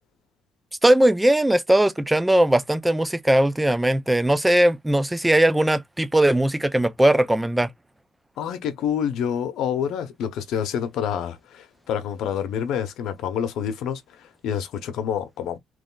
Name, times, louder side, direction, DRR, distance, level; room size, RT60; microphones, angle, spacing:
voice 1, 0.8-7.7, right 1 dB, 5° right, 0.3 m, -19 dB
voice 2, 8.4-15.6, left 8 dB, 75° left, 0.7 m, -27 dB
3.1 x 2.3 x 3.7 m
cardioid pair, 155°, 0 cm